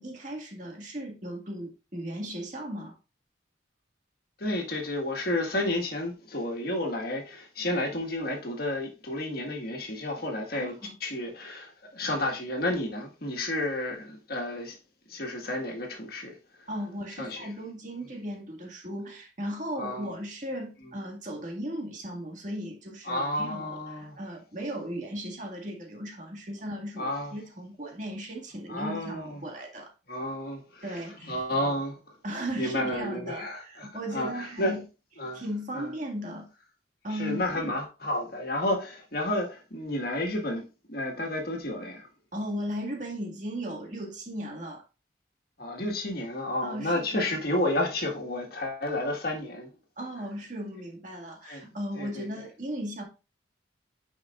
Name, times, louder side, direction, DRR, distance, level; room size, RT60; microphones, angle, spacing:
voice 1, 0.0-2.9 10.5-11.0 16.7-29.9 30.8-31.3 32.2-34.8 35.3-36.5 37.0-37.8 42.3-44.8 46.6-47.3 50.0-53.0, equal, 40° right, 2.0 m, -36 dB
voice 2, 4.4-14.8 15.1-16.4 17.2-17.5 19.8-20.1 20.8-20.9 23.1-24.2 27.0-27.3 28.7-29.4 30.1-32.0 32.6-34.7 35.2-35.4 35.7-35.9 37.1-42.1 45.6-49.7 51.5-52.3, left 1 dB, 50° left, 1.8 m, -31 dB
9.9 x 5.3 x 2.5 m
head